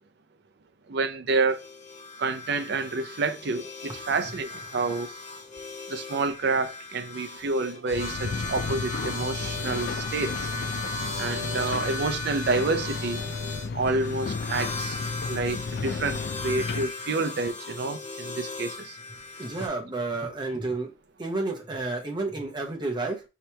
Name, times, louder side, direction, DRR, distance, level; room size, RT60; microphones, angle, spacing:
voice 1, 0.9-1.6 2.2-5.1 5.9-10.5 11.2-13.2 13.7-15.0 15.3-19.0, right 3 dB, 60° right, 0.5 m, -29 dB
sound 1, 1.5-19.7, left 2 dB, 40° left, 1.1 m, -37 dB
sound 2, 7.9-16.9, left 4 dB, 55° left, 0.4 m, -33 dB
voice 2, 19.4-20.9 21.2-23.2, right 2 dB, 25° right, 0.9 m, -30 dB
3.2 x 2.9 x 4.4 m
head